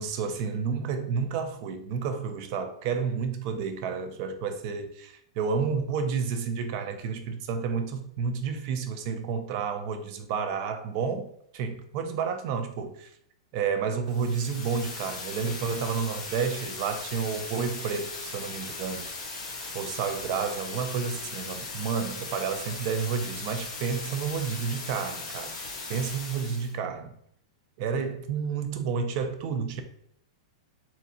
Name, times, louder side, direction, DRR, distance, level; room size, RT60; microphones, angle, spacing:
voice 1, 0.0-11.3 11.5-13.1 13.5-19.1 19.7-25.5 25.9-27.1 27.8-29.8, right 6 dB, 45° right, 0.6 m, -30 dB
sound 1, 14.1-26.7, left 3 dB, 25° left, 1.4 m, -38 dB
4.3 x 3.7 x 2.7 m
supercardioid pair, 155°, 3 cm